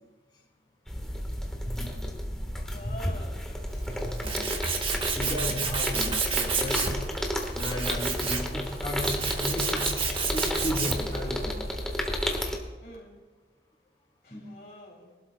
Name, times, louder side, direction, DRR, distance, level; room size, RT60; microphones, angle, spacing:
sound 1, 0.9-12.6, equal, 5° left, 1.5 m, -32 dB
voice 1, 1.7-2.2 2.8-2.9 3.9-4.5 5.2-7.0 7.6-9.9 10.3-11.6 14.3-14.5, left 1 dB, 25° left, -4 dB, 2.9 m, -35 dB
voice 2, 2.7-3.4 12.8-13.2 14.2-15.1, left 1 dB, 60° left, -3 dB, 3.3 m, -45 dB
Tools, 3.7-11.2, right 5 dB, 30° right, 1.1 m, -31 dB
23.0 x 12.5 x 2.3 m, 1.3 s
head